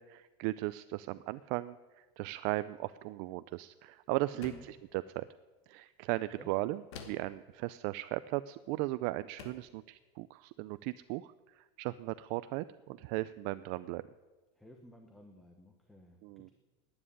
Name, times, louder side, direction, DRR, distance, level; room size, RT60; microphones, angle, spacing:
voice 1, 0.0-5.2 5.7-14.0 16.2-16.5, right 18 dB, 45° right, 15 dB, 0.4 m, -37 dB
voice 2, 4.3-4.7 6.3-6.5 14.6-16.5, equal, ahead, 3 dB, 1.0 m, -54 dB
sound 1, 4.4-4.8 6.9-7.4 8.7-8.8 9.4-9.7, left 6 dB, 80° left, 2.3 m, -48 dB
12.5 x 10.0 x 9.9 m, 1.3 s
supercardioid pair, 170°, 14 cm